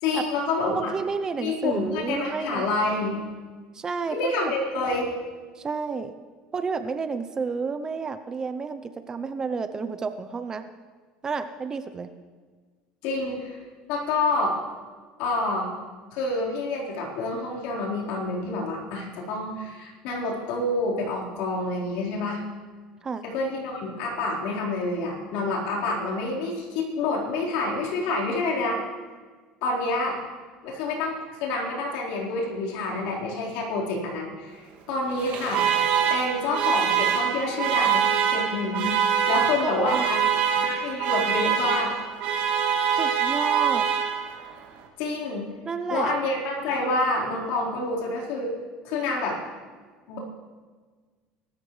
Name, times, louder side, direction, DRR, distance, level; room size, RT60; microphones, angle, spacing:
voice 1, 0.0-0.9 1.4-3.2 4.1-5.1 13.0-13.6 13.9-14.6 15.2-15.7 16.1-22.4 23.2-28.8 29.6-30.2 30.6-35.6 36.1-39.0 39.3-40.2 40.6-41.9 45.0-45.5 45.9-48.5 48.8-49.4 50.1-50.2, left 2 dB, 75° left, -4 dB, 4.4 m, -28 dB
voice 2, 0.7-2.7 3.7-4.5 5.6-6.1 6.5-10.6 11.2-12.1 23.0-23.2 39.6-40.0 43.0-43.9 45.6-46.1 46.8-47.0, right 5 dB, 25° right, 10 dB, 0.7 m, -30 dB
Alarm, 35.1-44.5, right 8 dB, 65° right, 2.3 m, -24 dB
23.5 x 13.5 x 3.3 m, 1.5 s
cardioid pair, 130°, 3 cm